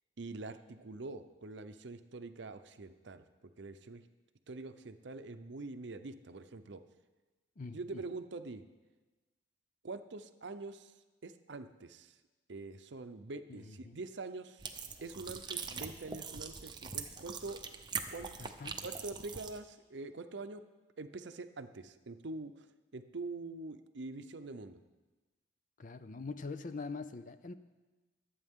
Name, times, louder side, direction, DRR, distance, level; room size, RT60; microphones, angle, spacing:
voice 1, 0.2-4.1 4.5-6.8 7.7-8.6 9.8-10.9 11.2-12.2 12.5-17.6 18.1-18.4 18.8-20.6 21.0-22.7 22.9-24.8, right 3 dB, 65° right, 9 dB, 0.7 m, -45 dB
voice 2, 7.6-8.0 13.5-14.0 18.4-18.8 25.8-27.5, left 4 dB, 45° left, 11 dB, 0.5 m, -44 dB
sound 1, 14.6-19.6, right 5 dB, 25° right, 0.7 m, -42 dB
22.5 x 8.7 x 3.7 m, 1.2 s
head